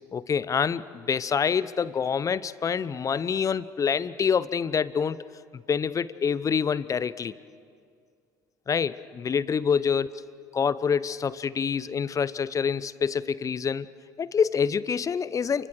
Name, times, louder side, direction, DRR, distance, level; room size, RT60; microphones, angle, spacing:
voice 1, 0.1-5.2 5.7-7.3 8.7-10.1 10.5-13.9 14.2-15.7, left 6 dB, 35° left, 17 dB, 0.9 m, -26 dB
29.5 x 24.5 x 6.6 m, 2.2 s
hypercardioid pair, 60°, 10 cm